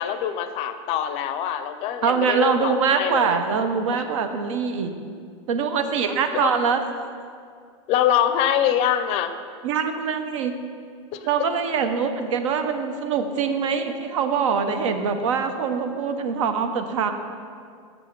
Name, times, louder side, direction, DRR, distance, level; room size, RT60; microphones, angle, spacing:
voice 1, 0.0-3.4 6.3-6.5 7.9-9.3 11.1-11.2, left 10 dB, 40° left, 10 dB, 0.4 m, -24 dB
voice 2, 2.0-4.9 5.5-6.8 9.6-10.6 11.2-17.1, right 6 dB, 90° right, 7 dB, 0.7 m, -23 dB
6.7 x 6.2 x 4.5 m, 2.2 s
supercardioid pair, 145°, 16 cm